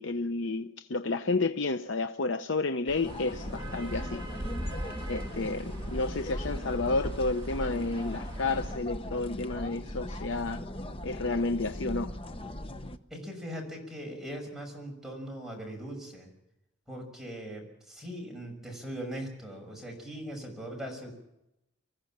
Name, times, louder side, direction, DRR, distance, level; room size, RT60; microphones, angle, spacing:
voice 1, 0.0-4.3 5.1-10.6 11.0-12.1, left 3 dB, 60° left, 0.7 m, -31 dB
sound 1, 2.9-8.8, equal, 20° right, 2.8 m, -39 dB
sound 2, 3.0-13.0, left 1 dB, 25° left, 0.9 m, -39 dB
voice 2, 13.1-16.3 16.9-21.1, equal, ahead, 6.2 m, -40 dB
25.0 x 15.0 x 7.4 m
head